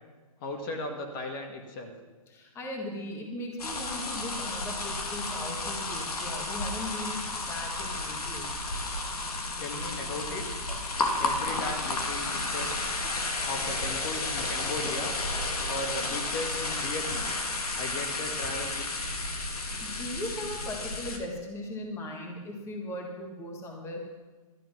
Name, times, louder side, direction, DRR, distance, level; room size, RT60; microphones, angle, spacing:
voice 1, 0.4-1.9 9.6-10.5 11.2-13.0 13.5-15.2 15.7-17.3 17.8-19.1, left 2 dB, 35° left, 3 dB, 1.7 m, -36 dB
voice 2, 2.3-8.6 19.5-24.0, left 1 dB, 15° left, 1 dB, 1.7 m, -38 dB
sound 1, 3.6-21.2, left 2 dB, 80° left, 2.2 m, -32 dB
12.5 x 10.0 x 6.1 m, 1.3 s
hypercardioid pair, 145°, 19 cm